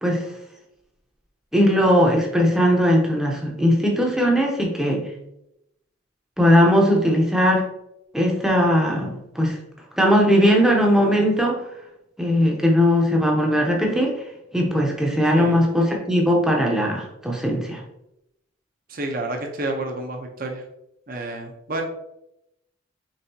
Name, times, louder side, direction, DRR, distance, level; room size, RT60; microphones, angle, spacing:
voice 1, 1.5-5.1 6.4-7.6 8.1-9.6 10.0-11.6 12.2-14.1 14.5-17.8, equal, ahead, -1 dB, 0.7 m, -19 dB
voice 2, 18.9-20.6 21.1-21.8, right 2 dB, 45° right, 3 dB, 0.7 m, -29 dB
5.4 x 3.4 x 2.8 m, 0.84 s
head